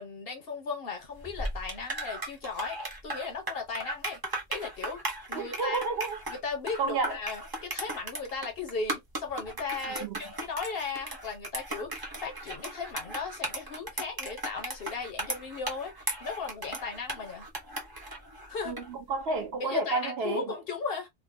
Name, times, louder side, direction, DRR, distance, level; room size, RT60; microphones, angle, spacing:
voice 1, 0.0-4.2 4.5-5.0 5.3-5.8 6.3-17.5 18.5-18.8 19.6-21.1, left 4 dB, 60° left, 1.0 m, -36 dB
sound 1, 1.1-18.9, right 1 dB, 25° right, 0.7 m, -37 dB
voice 2, 5.3-6.2 6.8-7.2 10.0-10.2 18.7-20.5, right 4 dB, 65° right, 0.9 m, -31 dB
2.5 x 2.1 x 2.6 m
omnidirectional pair, 1.2 m